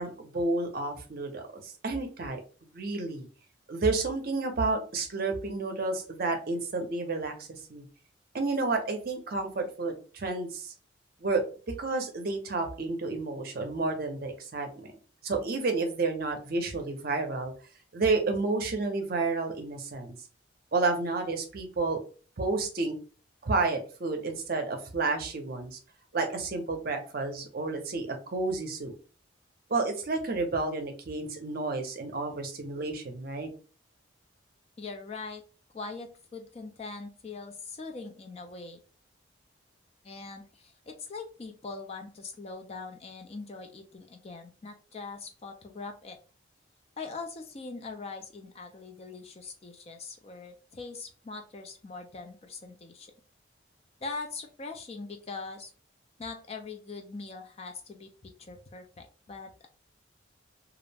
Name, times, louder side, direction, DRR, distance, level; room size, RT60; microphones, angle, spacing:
voice 1, 0.0-2.4 2.7-3.3 3.7-7.8 8.3-10.7 11.2-11.4 11.8-14.9 15.2-17.5 17.9-20.1 20.7-22.0 22.4-22.9 23.4-25.8 26.1-28.9 29.7-33.5, right 3 dB, 50° right, 4 dB, 0.6 m, -30 dB
voice 2, 34.8-35.4 35.7-38.8 40.0-46.2 47.0-53.1 54.0-55.7 56.2-59.7, left 4 dB, 30° left, 5 dB, 0.3 m, -42 dB
2.4 x 2.0 x 3.2 m, 0.37 s
head